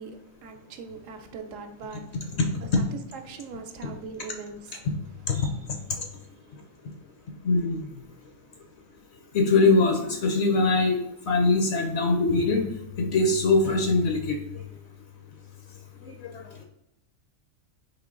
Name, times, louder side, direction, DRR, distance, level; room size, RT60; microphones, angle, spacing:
voice 1, 0.0-2.3 2.8-2.9 3.1-4.8 5.3-5.5, right 4 dB, 75° right, 6 dB, 0.9 m, -41 dB
voice 2, 7.4-7.8 9.3-11.0 11.3-12.7 13.0-14.4 16.0-16.1, left 3 dB, 65° left, 2 dB, 0.8 m, -22 dB
3.8 x 2.9 x 3.6 m, 0.81 s
omnidirectional pair, 1.4 m